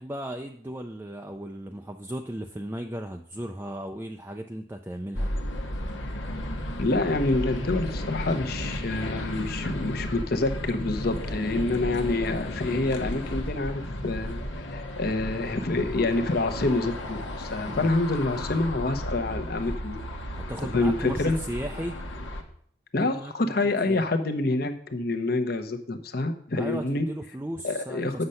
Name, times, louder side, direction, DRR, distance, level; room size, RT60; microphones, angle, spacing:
voice 1, 0.0-5.3 17.7-17.9 20.4-21.9 23.0-23.5 23.9-24.0 26.6-28.2, right 1 dB, 10° right, 3 dB, 0.4 m, -36 dB
sound 1, 5.1-22.4, left 1 dB, 85° left, 1.2 m, -34 dB
voice 2, 6.8-20.0 20.7-21.4 22.9-27.1 27.6-28.2, left 2 dB, 55° left, 7 dB, 0.9 m, -27 dB
7.9 x 6.5 x 5.6 m, 0.63 s
head